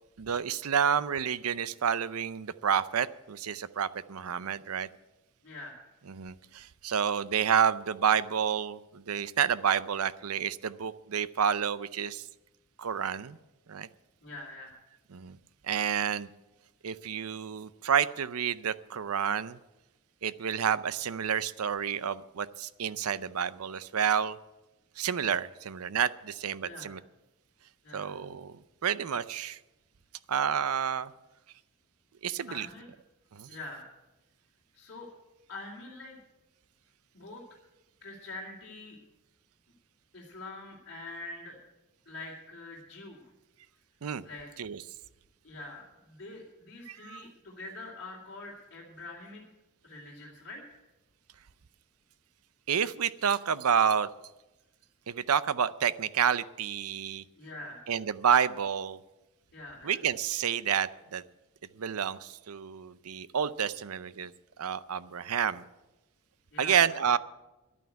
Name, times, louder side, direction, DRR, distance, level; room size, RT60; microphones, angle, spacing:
voice 1, 0.2-4.9 6.1-12.2 12.8-13.4 13.7-13.9 15.1-15.4 15.7-16.3 16.8-19.6 20.2-24.4 25.0-27.0 27.9-29.6 30.3-31.1 32.2-32.7 33.3-33.5 44.0-44.2 44.6-44.8 46.9-47.2 52.7-54.1 55.1-57.2 57.9-59.0 59.8-61.2 61.8-64.3 64.6-65.6 66.6-67.2, right 8 dB, 75° right, 16 dB, 0.6 m, -29 dB
voice 2, 5.4-5.8 14.2-14.8 26.6-27.0 27.8-28.2 32.5-32.9 33.5-33.9 34.7-35.1 35.5-36.2 37.1-37.4 38.0-39.0 40.1-41.6 42.1-43.2 44.2-44.5 45.4-49.4 49.8-50.8 57.4-57.9 59.5-60.0 66.5-67.0, left 2 dB, 50° left, -5 dB, 2.6 m, -44 dB
11.0 x 9.3 x 9.2 m, 1.0 s
head